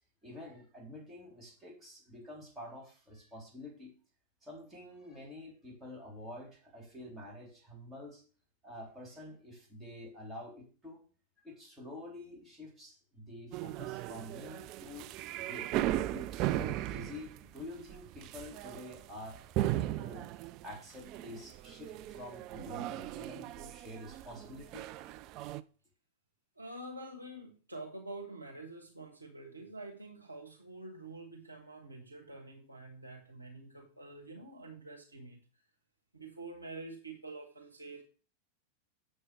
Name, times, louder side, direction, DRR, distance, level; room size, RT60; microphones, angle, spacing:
voice 1, 0.2-3.9 4.4-8.2 8.6-11.0 11.4-15.1 15.4-15.7 16.1-20.2 20.6-24.9, left 1 dB, 10° right, -2 dB, 3.3 m, -48 dB
sound 1, 13.5-25.6, right 14 dB, 40° right, 0.4 m, -37 dB
voice 2, 26.6-35.4 36.1-38.0, right 2 dB, 85° right, 2 dB, 1.6 m, -47 dB
7.5 x 6.5 x 4.7 m, 0.39 s
figure-of-eight pair, 90°, 0 cm